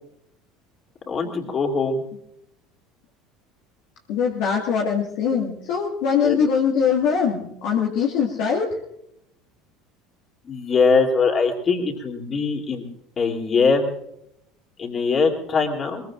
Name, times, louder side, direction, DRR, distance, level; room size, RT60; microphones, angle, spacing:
voice 1, 1.1-2.0 6.2-6.4 10.4-12.8 13.2-13.9 14.8-16.0, left 4 dB, 35° left, 2 dB, 3.3 m, -21 dB
voice 2, 4.1-8.8, left 6 dB, 60° left, -2 dB, 2.0 m, -22 dB
22.5 x 22.0 x 2.6 m, 0.77 s
figure-of-eight pair, 70°, 0 cm